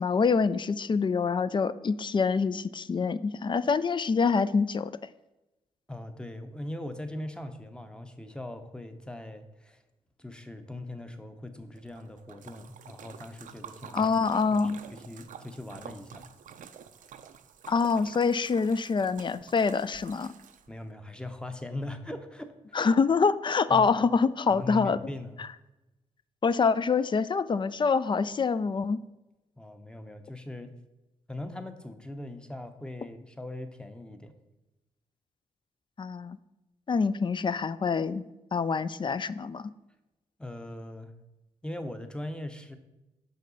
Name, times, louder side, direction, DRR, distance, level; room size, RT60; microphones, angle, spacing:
voice 1, 0.0-4.9 13.9-14.8 17.7-20.3 22.7-25.0 26.4-29.0 36.0-36.4 36.9-39.7, left 5 dB, 35° left, 15 dB, 0.4 m, -26 dB
voice 2, 5.9-9.8 10.2-14.1 14.5-16.3 20.7-22.8 23.7-23.9 24.5-25.4 29.6-30.7 31.3-34.3 40.4-41.1 41.6-42.8, left 1 dB, 5° left, 7 dB, 0.8 m, -40 dB
Splash splatter, 11.8-20.9, right 8 dB, 65° right, 0.5 m, -49 dB
5.5 x 5.3 x 3.9 m, 1.0 s
supercardioid pair, 45°, 15 cm